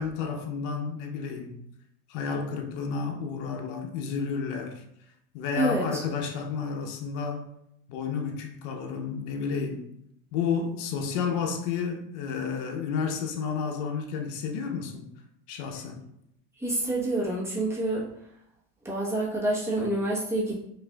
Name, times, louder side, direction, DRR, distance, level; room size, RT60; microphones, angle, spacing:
voice 1, 0.0-1.6 2.1-4.8 5.3-7.5 7.9-9.9 10.3-15.1 15.5-16.0, left 5 dB, 70° left, 0.8 m, -31 dB
voice 2, 5.6-6.0 16.6-18.0 18.8-20.5, right 1 dB, 5° right, 1.0 m, -27 dB
5.2 x 2.6 x 2.2 m
supercardioid pair, 125°, 40 cm